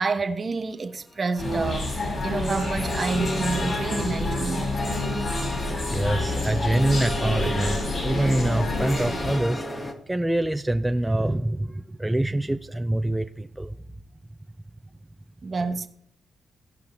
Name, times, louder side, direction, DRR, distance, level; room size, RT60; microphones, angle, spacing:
voice 1, 0.0-1.9 2.2-4.7 15.4-15.9, right 4 dB, 45° right, 1.2 m, -28 dB
sound 1, 1.3-9.9, equal, 30° left, 1.8 m, -35 dB
sound 2, 1.4-9.4, left 2 dB, 50° left, 5.8 m, -28 dB
voice 2, 5.4-9.6 10.1-13.7, right 1 dB, 10° right, 0.6 m, -25 dB
16.5 x 5.6 x 4.6 m
cardioid pair, 65°, 0 cm